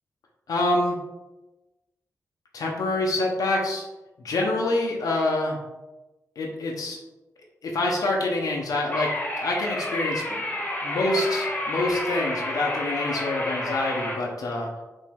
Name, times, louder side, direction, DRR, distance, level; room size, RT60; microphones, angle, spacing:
voice 1, 0.5-1.0 2.5-3.8 4.2-5.6 6.4-7.0 7.6-9.1 9.4-10.5 10.8-14.8, left 2 dB, 90° left, -1 dB, 0.8 m, -26 dB
sound 1, 8.9-14.1, left 1 dB, 30° left, 1.1 m, -30 dB
5.3 x 2.8 x 3.5 m, 1.1 s
wide cardioid pair, 110°, 6 cm